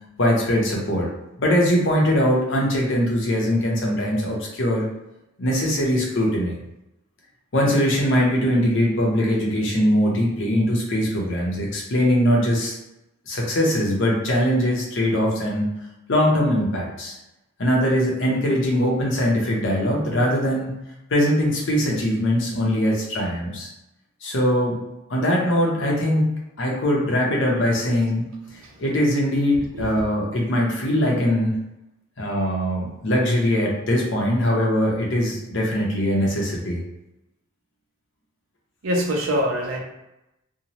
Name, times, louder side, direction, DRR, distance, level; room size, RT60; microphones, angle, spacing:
voice 1, 0.2-1.1 1.4-4.9 5.4-6.6 7.5-12.7 13.3-15.7 16.1-17.2 17.6-20.7 21.1-23.7 24.2-24.8 25.1-28.3 28.8-31.6 32.2-36.8, equal, 60° left, -2 dB, 0.7 m, -21 dB
voice 2, 38.8-39.8, equal, 75° right, -1 dB, 0.7 m, -23 dB
2.7 x 2.1 x 2.9 m, 0.91 s
head